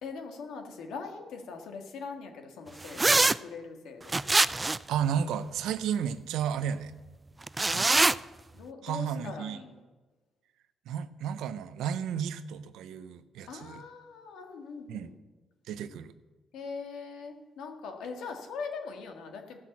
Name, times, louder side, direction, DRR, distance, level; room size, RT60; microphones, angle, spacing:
voice 1, 0.0-4.2 8.5-9.8 13.5-15.1 16.5-19.6, left 5 dB, 80° left, 3 dB, 1.8 m, -41 dB
sound 1, 3.0-3.4 4.1-4.9 7.5-8.1, right 2 dB, 20° right, 0.3 m, -23 dB
voice 2, 4.9-6.9 7.7-8.1 8.8-9.6 10.9-13.8 14.9-15.1 15.7-16.1, right 8 dB, 85° right, 13 dB, 0.6 m, -33 dB
15.0 x 6.1 x 7.3 m, 1.3 s
cardioid pair, 90°, 0 cm